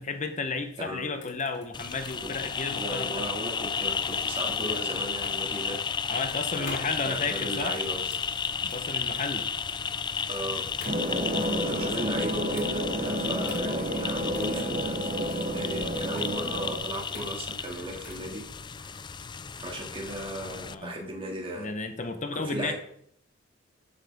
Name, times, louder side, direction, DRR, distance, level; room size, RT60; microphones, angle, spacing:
voice 1, 0.0-3.3 6.1-7.8 8.6-9.5 11.2-11.6 20.7-21.0 21.6-22.7, left 4 dB, 40° left, 8 dB, 0.9 m, -33 dB
sound 1, 0.5-18.3, left 2 dB, 60° left, 3.9 m, -48 dB
sound 2, 1.7-20.7, left 6 dB, 25° left, 0.4 m, -33 dB
voice 2, 2.7-5.8 6.5-8.1 10.3-10.7 11.4-18.4 18.8-19.0 19.6-21.7 22.3-22.7, right 1 dB, 30° right, -1 dB, 2.3 m, -36 dB
sound 3, 10.8-16.8, equal, 45° right, 2.3 m, -30 dB
13.0 x 7.9 x 3.6 m, 0.66 s
head